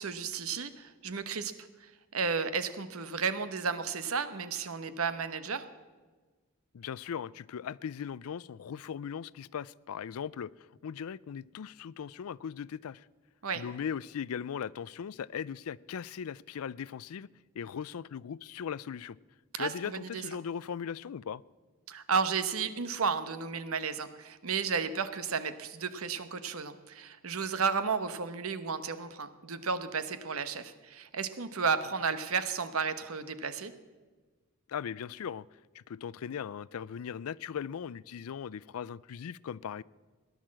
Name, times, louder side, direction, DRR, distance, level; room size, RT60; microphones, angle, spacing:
voice 1, 0.0-1.5 1.8-5.7 13.4-13.6 19.5-20.2 21.9-33.7, right 5 dB, 75° right, 12 dB, 1.1 m, -33 dB
voice 2, 6.7-13.1 13.5-17.3 17.6-19.2 19.6-21.4 34.7-35.5 35.7-39.8, left 7 dB, 80° left, 22 dB, 0.4 m, -39 dB
17.5 x 11.0 x 7.5 m, 1.4 s
head